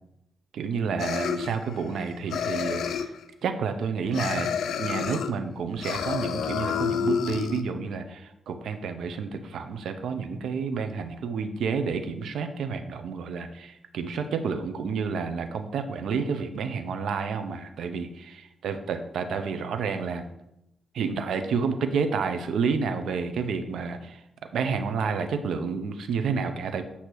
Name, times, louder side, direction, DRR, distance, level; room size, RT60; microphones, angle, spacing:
voice 1, 0.5-3.1 3.4-4.5 4.8-18.3 18.6-20.2 20.9-24.2 24.5-26.8, right 5 dB, 85° right, 8 dB, 0.7 m, -30 dB
sound 1, 1.0-2.0 2.3-3.2 4.1-5.3 5.8-7.6, left 7 dB, 90° left, 0.4 m, -29 dB
8.3 x 2.8 x 6.2 m, 0.84 s
cardioid pair, 80°, 0 cm